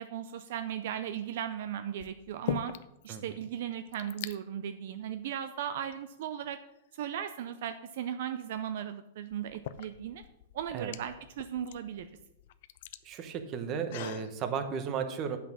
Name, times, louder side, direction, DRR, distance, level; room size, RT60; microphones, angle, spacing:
voice 1, 0.0-2.7 3.0-6.6 6.9-10.2 10.5-12.1, right 10 dB, 55° right, 9 dB, 0.5 m, -37 dB
sound 1, 0.8-1.2 2.0-3.1 3.4-3.5 3.7-4.4 5.2-5.3 5.9-6.8 8.5-8.6 9.3-14.3, left 12 dB, 55° left, 0.4 m, -42 dB
voice 2, 13.0-15.4, right 6 dB, 25° right, 8 dB, 0.9 m, -34 dB
8.5 x 5.7 x 6.1 m, 0.89 s
supercardioid pair, 160°, 0 cm